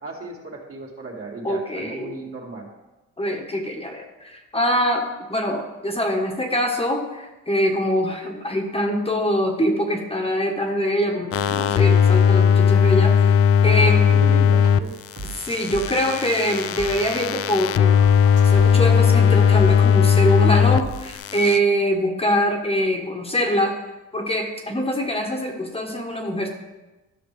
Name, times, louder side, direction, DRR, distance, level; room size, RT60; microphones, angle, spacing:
voice 1, 0.0-2.7 13.6-14.9, right 3 dB, 50° right, -2 dB, 2.4 m, -35 dB
voice 2, 1.4-2.1 3.2-14.0 15.5-18.0 18.4-23.8 24.1-26.5, equal, 20° left, 2 dB, 1.3 m, -24 dB
sound 1, 11.3-14.8 15.1-20.8 21.1-21.6, left 7 dB, 50° left, 0.4 m, -17 dB
sound 2, 14.6-14.7 15.2-17.5 17.8-19.0 19.6-19.7 20.3-20.4 20.8-21.2, right 3 dB, 75° right, 2.4 m, -37 dB
12.5 x 6.2 x 3.4 m, 1.1 s
cardioid pair, 90°, 30 cm